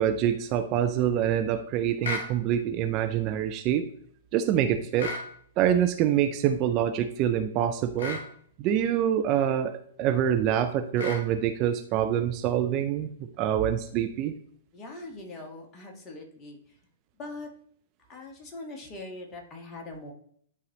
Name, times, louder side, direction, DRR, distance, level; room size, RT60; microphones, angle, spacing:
voice 1, 0.0-3.9 4.3-5.1 5.6-8.2 8.6-14.3, right 10 dB, 30° right, 8 dB, 0.4 m, -26 dB
sound 1, 2.0-2.3 5.0-5.3 8.0-8.3 11.0-11.3, left 3 dB, 55° left, 2.2 m, -33 dB
voice 2, 14.7-16.8 17.2-17.5 18.1-20.1, left 2 dB, 20° left, 2 dB, 1.5 m, -42 dB
10.5 x 4.1 x 3.0 m, 0.62 s
figure-of-eight pair, 110°, 0 cm